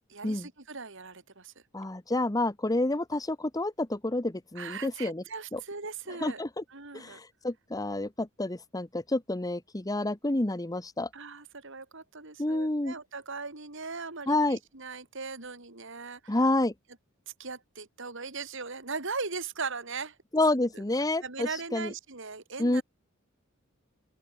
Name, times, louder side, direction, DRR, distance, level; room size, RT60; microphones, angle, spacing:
voice 1, 0.1-1.5 4.5-6.4 6.7-7.2 11.1-16.4 17.4-20.2 20.7-20.8 21.2-22.8, right 4 dB, 65° right, 3.4 m, -39 dB
voice 2, 1.7-5.2 5.5-5.6 6.2-6.6 6.9-11.1 12.4-12.9 14.3-14.6 16.3-16.7 20.3-21.9 22.6-22.8, left 2 dB, 20° left, 1.1 m, -29 dB
open air
head